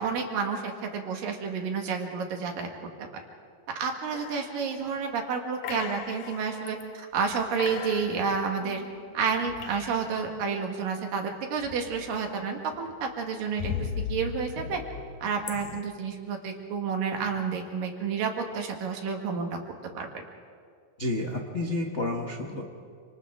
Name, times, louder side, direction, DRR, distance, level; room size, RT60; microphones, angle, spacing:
voice 1, 0.0-2.7 3.0-3.2 3.8-8.8 9.1-14.8 15.2-19.5 20.0-20.2, right 5 dB, 90° right, 2 dB, 3.6 m, -30 dB
sound 1, 4.1-5.1 5.6-6.8 7.2-7.3 7.6-10.3 11.6-12.3 12.7-15.8, left 7 dB, 75° left, 2.3 m, -38 dB
voice 2, 21.0-22.6, left 2 dB, 55° left, -2 dB, 0.7 m, -30 dB
28.5 x 26.0 x 3.7 m, 2.2 s
omnidirectional pair, 3.8 m